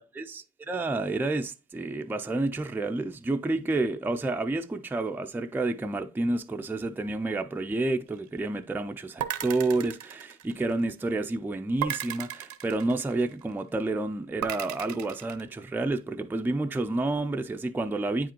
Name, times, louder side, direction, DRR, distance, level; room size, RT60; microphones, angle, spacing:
voice 1, 0.2-18.3, right 2 dB, 5° right, 0.4 m, -29 dB
sound 1, 9.2-10.9 11.8-13.4 14.4-15.4, right 11 dB, 70° right, 0.7 m, -35 dB
8.7 x 5.0 x 2.9 m
cardioid pair, 90°, 30 cm